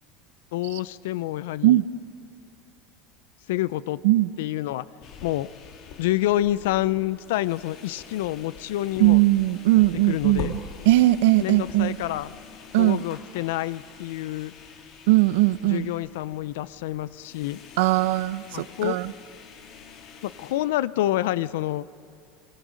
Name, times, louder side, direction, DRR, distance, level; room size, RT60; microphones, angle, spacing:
voice 1, 0.5-1.8 3.5-4.0 4.4-4.9 5.2-5.5 6.0-9.2 10.1-10.5 11.4-12.3 12.8-14.5 15.6-17.6 18.5-19.0 20.2-21.9, left 15 dB, 90° left, 18 dB, 0.5 m, -27 dB
sound 1, 5.0-20.5, left 6 dB, 50° left, 2.6 m, -44 dB
voice 2, 9.0-12.0 12.7-13.0 15.1-15.9 17.8-19.1, right 17 dB, 85° right, 16 dB, 0.6 m, -20 dB
26.5 x 22.0 x 5.2 m, 2.5 s
supercardioid pair, 155°, 0 cm